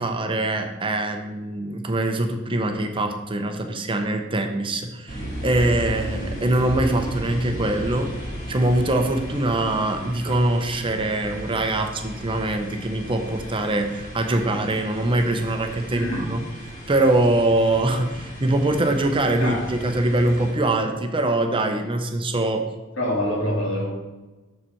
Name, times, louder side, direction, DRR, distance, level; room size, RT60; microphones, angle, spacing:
voice 1, 0.0-8.1 8.5-16.4 16.9-22.6, right 2 dB, 25° right, 5 dB, 0.7 m, -23 dB
sound 1, 5.1-20.5, equal, 45° left, 2.1 m, -35 dB
voice 2, 15.9-16.3 19.4-19.7 23.0-23.9, left 1 dB, 70° left, -2 dB, 2.4 m, -25 dB
7.1 x 6.6 x 4.5 m, 1.2 s
head